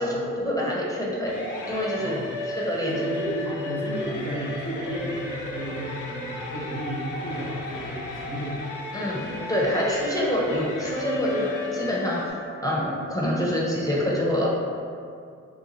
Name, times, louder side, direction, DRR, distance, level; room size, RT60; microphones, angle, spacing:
voice 1, 0.0-1.4 1.6-3.1 8.9-14.5, left 1 dB, 10° left, -5 dB, 0.7 m, -26 dB
sound 1, 1.3-12.3, left 1 dB, 60° left, 0.6 m, -34 dB
voice 2, 2.8-8.6, equal, 65° right, -7 dB, 1.0 m, -32 dB
2.9 x 2.3 x 2.7 m, 2.3 s
hypercardioid pair, 40°, 35 cm